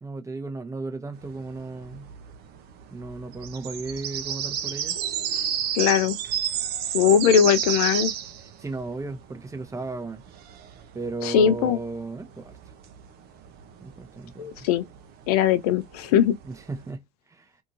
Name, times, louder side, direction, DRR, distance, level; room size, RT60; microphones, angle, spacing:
voice 1, 0.0-2.1 2.9-4.9 8.6-10.2 10.9-12.5 13.8-14.5 16.4-17.5, right 3 dB, 15° right, 0.7 m, -35 dB
sound 1, 1.2-16.9, right 9 dB, 55° right, 0.7 m, -32 dB
voice 2, 5.7-6.2 6.9-8.1 11.2-11.8 14.4-14.8 15.3-16.4, left 8 dB, 70° left, 0.5 m, -20 dB
2.7 x 2.5 x 2.5 m
hypercardioid pair, 75°, 20 cm